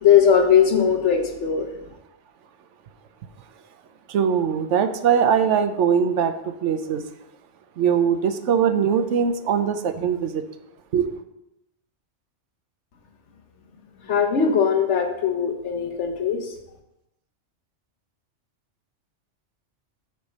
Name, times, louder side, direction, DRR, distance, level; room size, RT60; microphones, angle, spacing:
voice 1, 0.0-1.7 14.1-16.5, left 7 dB, 70° left, 4 dB, 1.2 m, -19 dB
voice 2, 4.1-7.1 7.8-10.4 10.9-11.1, right 7 dB, 75° right, 9 dB, 1.0 m, -21 dB
8.1 x 3.3 x 6.4 m, 0.90 s
omnidirectional pair, 1.3 m